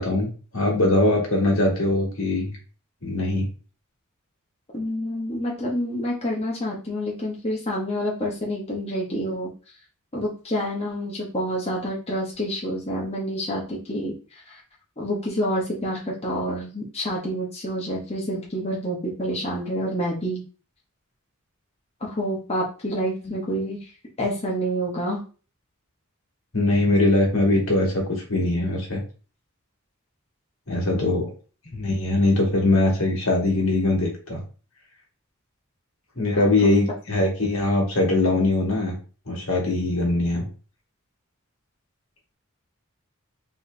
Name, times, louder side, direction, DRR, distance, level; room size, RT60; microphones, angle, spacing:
voice 1, 0.0-2.5 3.0-3.5 26.5-29.0 30.7-31.3 31.7-34.4 36.2-39.0 39.3-40.4, left 2 dB, 75° left, -1 dB, 1.7 m, -22 dB
voice 2, 4.7-9.5 10.1-14.6 15.0-20.4 22.0-23.9 24.2-25.2 30.9-31.2 36.2-36.8, equal, 30° left, -3 dB, 1.1 m, -28 dB
4.1 x 3.2 x 3.3 m, 0.36 s
head